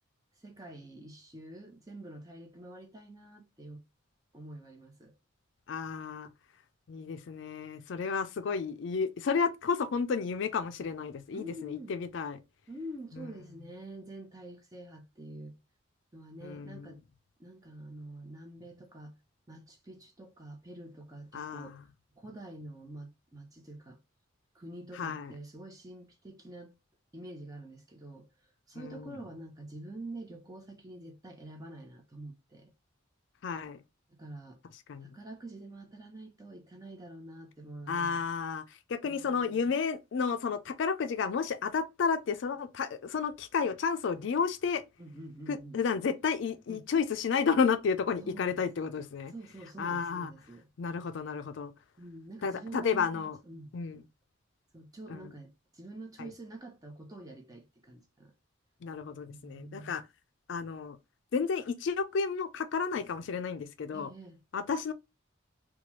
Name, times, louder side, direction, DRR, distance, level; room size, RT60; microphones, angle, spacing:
voice 1, 0.4-3.8 4.3-5.1 8.4-8.5 11.3-12.0 12.7-15.6 16.1-17.0 17.4-19.2 19.5-21.8 22.2-24.0 24.5-26.8 27.1-28.3 28.7-32.7 34.1-34.6 35.0-38.3 39.0-39.7 45.0-45.8 46.7-46.9 48.2-48.6 49.3-50.7 52.0-53.7 54.7-58.3 59.3-60.0 63.9-64.4, right 1 dB, 20° right, 0.5 m, -47 dB
voice 2, 5.7-6.3 6.9-12.4 13.1-13.3 16.4-16.9 21.3-21.8 24.9-25.3 28.8-29.1 33.4-33.8 34.9-35.1 37.9-38.6 38.9-44.8 45.5-49.3 49.8-50.3 50.8-51.7 52.4-53.4 53.7-54.0 55.1-55.3 56.2-56.3 58.8-60.0 60.5-61.0 61.3-64.1 64.5-64.9, left 5 dB, 60° left, 0.4 m, -32 dB
3.0 x 2.3 x 2.9 m
head